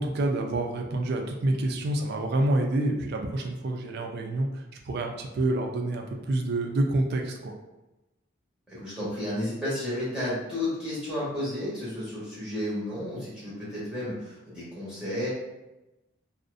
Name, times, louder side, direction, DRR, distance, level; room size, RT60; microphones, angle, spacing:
voice 1, 0.0-7.5, right 2 dB, 55° right, 2 dB, 0.3 m, -28 dB
voice 2, 8.7-15.3, left 1 dB, 5° right, -10 dB, 0.9 m, -32 dB
2.5 x 2.0 x 2.4 m, 1.0 s
head